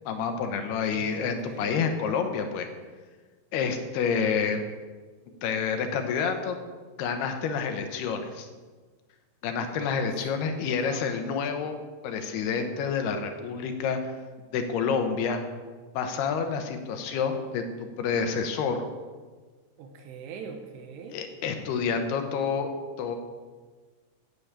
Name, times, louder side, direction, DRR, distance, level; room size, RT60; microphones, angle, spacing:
voice 1, 0.1-2.7 3.5-4.6 5.4-6.6 7.0-8.5 9.4-11.8 12.0-14.0 14.5-15.4 15.9-18.8 21.1-22.7 23.0-23.2, left 6 dB, 75° left, 6 dB, 3.0 m, -28 dB
voice 2, 0.7-1.8 10.5-11.0 19.8-21.2, right 5 dB, 85° right, 4 dB, 3.2 m, -43 dB
10.0 x 9.6 x 8.8 m, 1.4 s
omnidirectional pair, 4.8 m